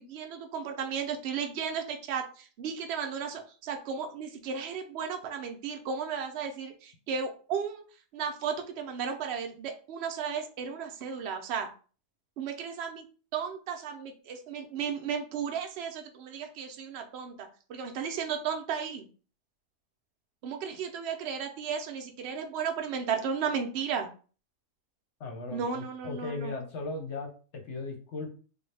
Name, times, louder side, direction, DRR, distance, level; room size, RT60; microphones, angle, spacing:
voice 1, 0.0-7.8 8.1-11.7 12.4-13.0 13.3-19.1 20.4-24.1 25.5-26.5, right 6 dB, 65° right, 4 dB, 0.6 m, -34 dB
voice 2, 25.2-28.3, left 3 dB, 55° left, 2 dB, 0.8 m, -37 dB
3.3 x 2.3 x 3.2 m, 0.39 s
omnidirectional pair, 1.7 m